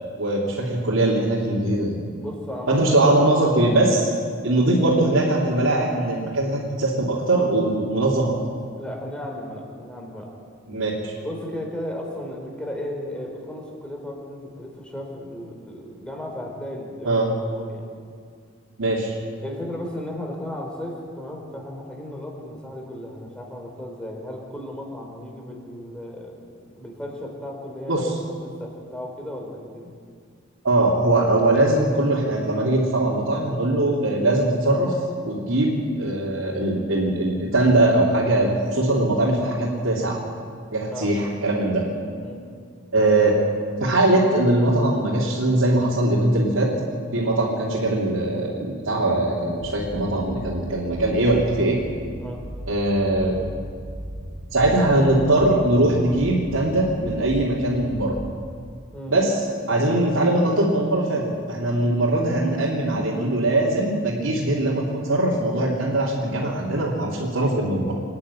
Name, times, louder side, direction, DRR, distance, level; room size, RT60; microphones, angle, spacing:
voice 1, 0.2-2.0 2.7-4.1 4.4-8.3 10.7-11.1 17.0-17.3 18.8-19.2 27.9-28.1 30.6-34.9 35.2-40.2 40.7-41.8 42.9-43.3 43.8-46.7 47.1-51.8 52.7-53.4 54.5-58.2 59.1-59.4 59.7-61.2 61.5-67.9, right 1 dB, 85° right, -7 dB, 3.3 m, -21 dB
voice 2, 2.2-3.0 8.8-10.4 11.2-17.9 19.4-26.5 26.7-29.9 40.9-41.1 42.2-42.4 52.2-52.4 58.9-59.1, left 1 dB, 5° left, 0 dB, 4.1 m, -35 dB
sound 1, 49.6-58.4, equal, 50° right, 2.5 m, -36 dB
26.0 x 10.5 x 9.9 m, 2.1 s
head